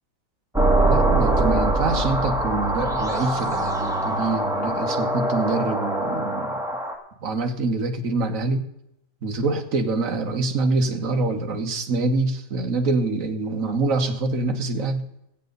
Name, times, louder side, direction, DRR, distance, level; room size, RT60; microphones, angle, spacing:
sound 1, 0.5-6.9, right 1 dB, ahead, 2.0 m, -23 dB
voice 1, 0.8-6.6 7.2-8.7 9.2-15.0, right 3 dB, 45° right, 4 dB, 1.7 m, -25 dB
21.5 x 8.4 x 4.0 m, 0.81 s
omnidirectional pair, 2.0 m